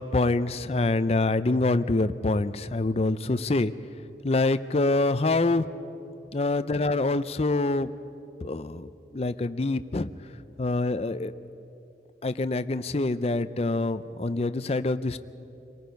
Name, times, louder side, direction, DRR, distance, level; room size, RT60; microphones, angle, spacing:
voice 1, 0.0-3.7 4.2-5.7 6.3-7.9 8.4-10.1 10.6-11.3 12.2-15.2, left 2 dB, 35° left, 13 dB, 0.5 m, -25 dB
27.0 x 19.0 x 5.3 m, 2.9 s
head